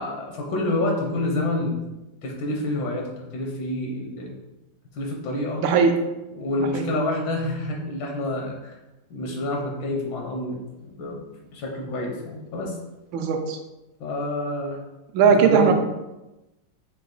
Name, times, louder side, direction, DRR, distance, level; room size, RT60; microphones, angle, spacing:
voice 1, 0.0-1.9 2.2-4.3 4.9-5.6 6.3-8.8 9.1-11.2 11.5-12.8 14.0-14.8 15.2-15.7, left 1 dB, 80° left, 0 dB, 1.4 m, -28 dB
voice 2, 5.6-5.9 6.7-6.8 13.1-13.6 15.1-15.7, right 6 dB, 85° right, 5 dB, 1.4 m, -18 dB
4.0 x 2.9 x 3.8 m, 1.0 s
omnidirectional pair, 2.1 m